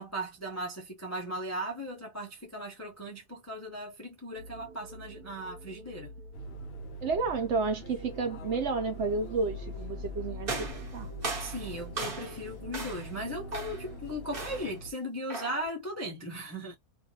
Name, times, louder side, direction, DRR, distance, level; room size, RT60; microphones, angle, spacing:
voice 1, 0.0-6.1 11.4-16.7, equal, 25° left, 0.3 m, -37 dB
sound 1, 4.4-14.6, left 3 dB, 75° right, 1.2 m, -46 dB
sound 2, 6.3-14.9, right 1 dB, 65° left, 0.7 m, -45 dB
voice 2, 7.0-11.1, right 4 dB, 60° right, 0.8 m, -31 dB
sound 3, 10.4-12.4 12.7-13.1 13.5-13.9 14.3-14.8 15.3-15.7, right 3 dB, 40° right, 1.2 m, -37 dB
2.6 x 2.4 x 2.8 m
omnidirectional pair, 1.6 m